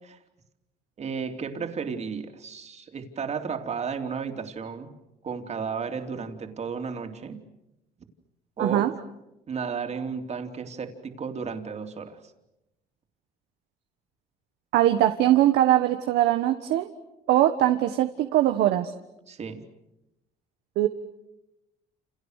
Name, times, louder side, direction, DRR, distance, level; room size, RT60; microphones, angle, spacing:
voice 1, 1.0-4.9 5.2-7.4 8.6-8.9 9.5-12.2 19.3-19.6, right 6 dB, 40° right, 6 dB, 3.3 m, -33 dB
voice 2, 8.6-8.9 14.7-16.9 17.3-18.9 20.7-20.9, right 13 dB, 85° right, 7 dB, 1.5 m, -21 dB
29.5 x 29.5 x 6.7 m, 0.90 s
cardioid pair, 110°, 17 cm